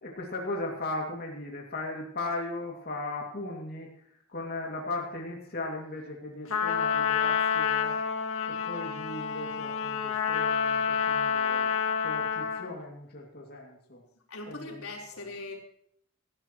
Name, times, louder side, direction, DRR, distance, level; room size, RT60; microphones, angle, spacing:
voice 1, 0.0-8.0 8.5-14.0 14.5-14.8 15.1-15.2, left 2 dB, 45° left, -1 dB, 2.5 m, -37 dB
Trumpet, 6.5-12.7, left 7 dB, 70° left, 2.1 m, -28 dB
voice 2, 14.3-15.5, left 2 dB, 90° left, -1 dB, 4.1 m, -40 dB
18.0 x 14.5 x 3.1 m, 0.70 s
head